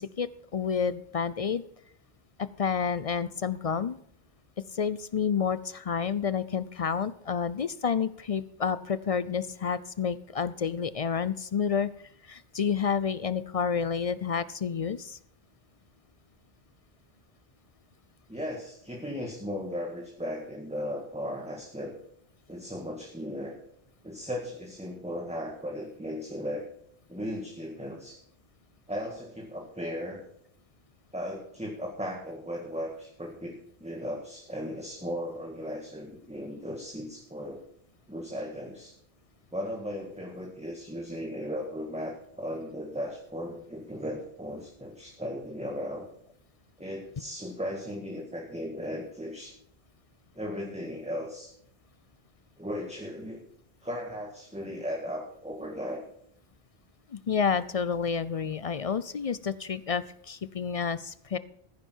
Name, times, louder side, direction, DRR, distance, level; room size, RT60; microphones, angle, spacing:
voice 1, 0.0-1.6 2.4-4.0 4.7-11.9 12.2-15.2 57.1-61.4, left 6 dB, 50° left, 16 dB, 0.4 m, -29 dB
voice 2, 18.3-21.9 22.5-23.5 24.0-26.7 27.1-28.2 28.9-30.2 31.1-37.6 38.1-38.9 39.5-46.1 46.8-49.5 50.4-51.5 52.6-53.4 53.8-56.0, equal, 5° right, 0 dB, 1.7 m, -36 dB
14.5 x 10.0 x 4.5 m, 0.68 s
omnidirectional pair, 1.1 m